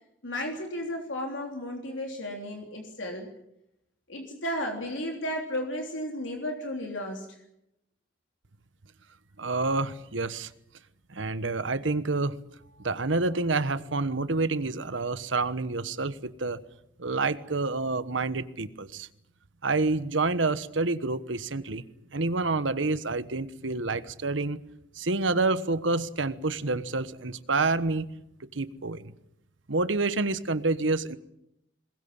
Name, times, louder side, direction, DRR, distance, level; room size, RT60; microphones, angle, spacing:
voice 1, 0.2-3.3 4.1-7.2, left 1 dB, 85° left, 2 dB, 3.4 m, -34 dB
voice 2, 9.4-10.5 11.1-12.4 12.8-16.6 17.0-19.1 19.6-21.8 22.1-24.6 25.0-28.1 28.5-29.1 29.7-31.2, right 3 dB, 85° right, 14 dB, 1.3 m, -28 dB
22.0 x 20.5 x 8.8 m, 0.81 s
head